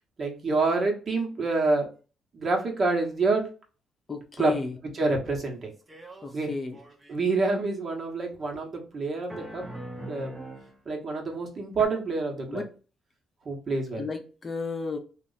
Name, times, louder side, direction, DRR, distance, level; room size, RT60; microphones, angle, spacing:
voice 1, 0.2-1.9 2.3-3.5 4.4-4.6 4.9-5.7 6.3-6.5 7.1-10.4 10.8-12.6 13.4-14.1, right 3 dB, 45° right, 1.2 m, -27 dB
voice 2, 4.1-4.8 6.2-6.8 12.5-12.7 14.0-15.0, left 4 dB, 35° left, 0.7 m, -33 dB
sound 1, 5.9-6.4 6.7-7.5 9.3-10.7 11.8-11.9, right 1 dB, 20° right, 0.9 m, -41 dB
3.0 x 2.5 x 3.9 m
cardioid pair, 90°, 0 cm